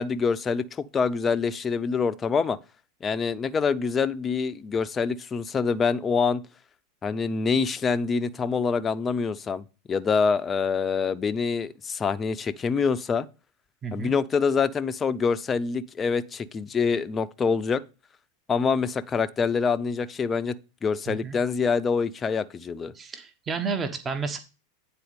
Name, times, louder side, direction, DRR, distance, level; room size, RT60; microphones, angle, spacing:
voice 1, 0.0-2.6 3.0-6.4 7.0-9.6 9.9-13.3 13.9-17.8 18.5-20.6 20.8-22.9, left 5 dB, 25° left, 0.6 m, -25 dB
voice 2, 13.8-14.1 21.1-21.4 22.9-24.4, right 5 dB, 25° right, 1.3 m, -31 dB
9.3 x 4.1 x 5.2 m
hypercardioid pair, 95°, 0 cm